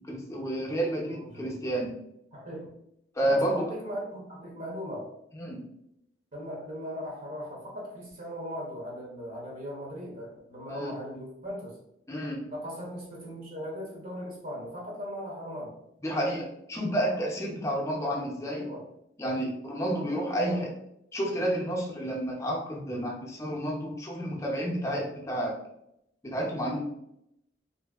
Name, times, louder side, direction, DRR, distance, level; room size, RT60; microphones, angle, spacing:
voice 1, 0.1-1.9 3.1-3.7 5.3-5.6 10.7-10.9 12.1-12.4 16.0-18.7 19.2-20.7 21.1-25.6 26.2-26.8, right 1 dB, 15° left, -2 dB, 0.6 m, -30 dB
voice 2, 1.1-1.6 2.3-2.8 3.3-5.1 6.3-11.8 12.5-15.7 18.1-18.9 20.1-20.7, equal, 50° right, -4 dB, 0.8 m, -39 dB
2.6 x 2.6 x 2.3 m, 0.78 s
head